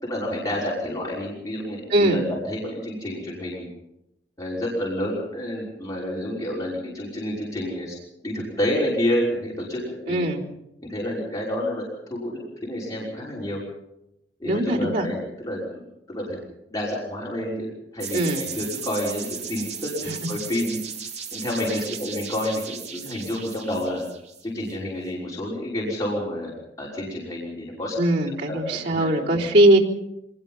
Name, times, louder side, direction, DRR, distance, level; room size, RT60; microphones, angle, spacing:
voice 1, 0.0-3.7 4.4-8.0 8.2-10.2 10.8-13.6 14.4-15.8 16.1-16.4 16.7-20.8 21.3-24.0 24.4-26.5 26.8-27.9 28.4-29.5, left 1 dB, 20° left, -6 dB, 5.8 m, -29 dB
voice 2, 1.9-2.2 10.1-10.4 14.4-15.0 18.1-18.4 28.0-29.8, right 1 dB, 70° right, -3 dB, 3.9 m, -20 dB
sound 1, 18.0-24.7, right 6 dB, 40° right, 2.6 m, -36 dB
25.5 x 20.0 x 5.7 m, 0.85 s
head